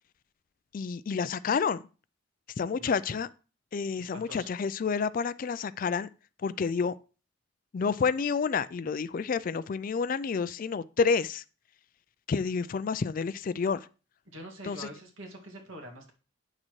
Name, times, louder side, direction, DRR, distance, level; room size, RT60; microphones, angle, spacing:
voice 1, 0.7-1.8 2.6-3.3 3.7-6.1 6.4-6.9 7.7-11.4 12.3-13.9 14.6-14.9, left 5 dB, 45° left, 0.3 m, -29 dB
voice 2, 4.0-4.5 14.3-16.1, right 1 dB, 75° right, 2.1 m, -45 dB
8.6 x 6.5 x 3.1 m
head